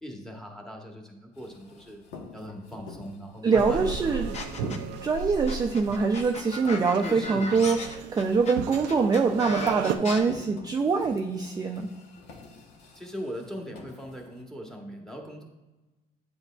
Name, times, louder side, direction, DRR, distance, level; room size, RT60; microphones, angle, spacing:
voice 1, 0.0-2.0 2.3-4.3 7.0-7.5 12.9-15.4, equal, 5° left, 1 dB, 1.1 m, -39 dB
sound 1, 1.3-14.4, left 3 dB, 80° left, 1.1 m, -49 dB
voice 2, 3.4-4.3 5.0-11.9, right 4 dB, 20° right, 3 dB, 0.4 m, -24 dB
sound 2, 3.6-10.0, right 8 dB, 85° right, 0.4 m, -35 dB
sound 3, 4.3-5.0 5.5-10.2, left 3 dB, 40° left, 0.8 m, -36 dB
8.0 x 5.3 x 2.3 m, 1.1 s
cardioid pair, 110°, 17 cm